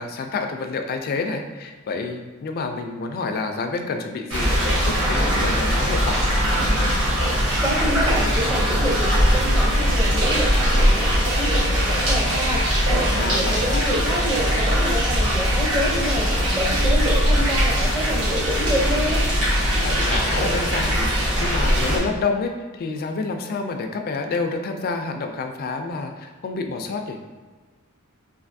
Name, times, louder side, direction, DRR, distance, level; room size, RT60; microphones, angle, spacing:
voice 1, 0.0-6.3 13.1-13.9 19.8-21.1 21.4-27.2, left 4 dB, 45° left, 5 dB, 0.3 m, -28 dB
sound 1, 4.3-22.0, equal, 60° right, 1.1 m, -21 dB
voice 2, 7.6-19.2, equal, 15° right, -3 dB, 0.5 m, -27 dB
3.2 x 2.5 x 2.5 m, 1.3 s
head